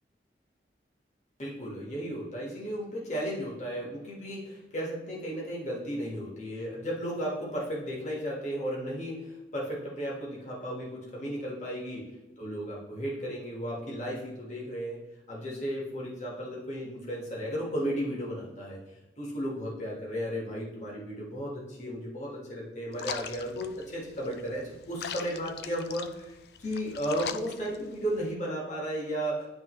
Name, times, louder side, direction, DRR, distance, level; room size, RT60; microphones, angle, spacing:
voice 1, 1.4-12.1 12.4-15.0 15.3-18.8 19.2-29.5, equal, 40° left, -4 dB, 1.6 m, -34 dB
sound 1, 22.9-28.3, left 7 dB, 60° left, 0.4 m, -42 dB
10.0 x 3.5 x 3.1 m, 1.0 s
head